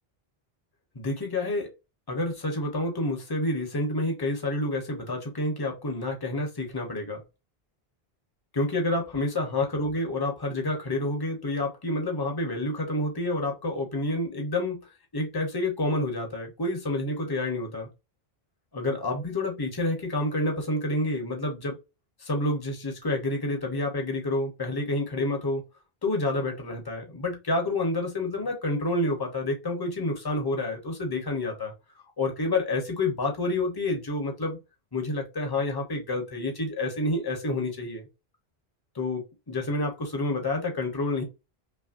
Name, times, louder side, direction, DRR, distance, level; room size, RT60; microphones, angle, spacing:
voice 1, 0.9-1.7 2.1-7.2 8.5-14.9 15.1-17.9 18.7-21.8 22.2-25.6 26.0-31.7 32.2-34.6 34.9-38.1 38.9-41.2, left 2 dB, 25° left, 1.0 m, -28 dB
5.7 x 2.2 x 2.6 m
omnidirectional pair, 1.0 m